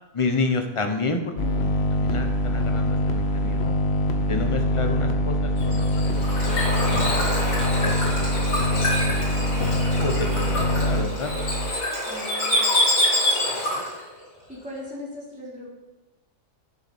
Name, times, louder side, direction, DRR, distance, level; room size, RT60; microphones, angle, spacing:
voice 1, 0.1-1.7 2.0-3.7 4.3-5.9 6.3-7.1 7.7-11.3 13.5-13.8, left 3 dB, 30° left, 5 dB, 0.8 m, -30 dB
sound 1, 1.4-11.7, left 1 dB, 55° left, 1.1 m, -24 dB
Bird / Water, 5.6-14.0, left 1 dB, 75° left, 3.2 m, -26 dB
voice 2, 12.0-12.7 14.5-15.7, left 1 dB, 5° right, -8 dB, 3.9 m, -38 dB
11.0 x 6.9 x 4.3 m, 1.0 s
omnidirectional pair, 1.4 m